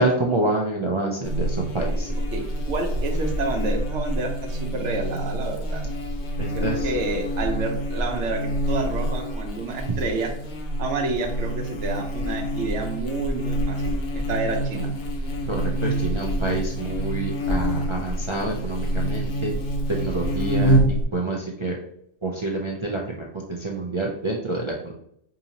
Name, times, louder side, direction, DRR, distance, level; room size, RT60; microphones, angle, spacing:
voice 1, 0.0-2.1 6.4-7.0 15.5-19.5 19.9-20.8 21.1-21.8 22.2-24.9, right 2 dB, 55° right, -1 dB, 0.3 m, -27 dB
Buzz, 1.2-21.0, right 1 dB, 55° left, 0.6 m, -26 dB
voice 2, 2.3-5.9 6.5-10.3 10.8-14.9, right 3 dB, 85° right, 3 dB, 1.0 m, -29 dB
4.8 x 2.7 x 2.8 m, 0.70 s
omnidirectional pair, 1.2 m